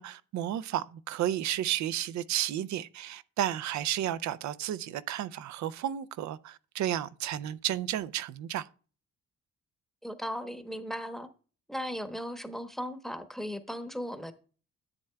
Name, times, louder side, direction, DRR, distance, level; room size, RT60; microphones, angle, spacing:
voice 1, 0.0-8.7, right 11 dB, 70° right, 0.5 m, -32 dB
voice 2, 10.0-11.3 11.7-14.3, equal, ahead, 0.9 m, -37 dB
10.5 x 7.6 x 2.2 m
cardioid pair, 90°, 30 cm